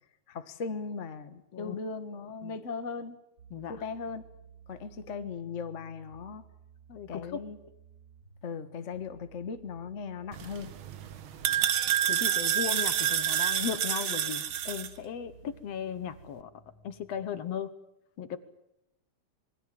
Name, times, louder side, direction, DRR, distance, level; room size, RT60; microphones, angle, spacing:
voice 1, 0.3-3.2 3.7-4.2 4.7-6.4 7.1-7.6 8.4-10.7, left 5 dB, 40° left, 9 dB, 1.0 m, -38 dB
sound 1, 3.4-17.2, right 6 dB, 30° right, 5.0 m, -56 dB
voice 2, 3.5-3.8 6.9-7.4 12.1-16.5 16.8-17.7 18.2-18.4, left 8 dB, 65° left, 13 dB, 2.1 m, -36 dB
sound 2, 10.3-14.9, right 11 dB, 60° right, 1.5 m, -29 dB
26.5 x 21.5 x 7.6 m, 0.87 s
omnidirectional pair, 3.5 m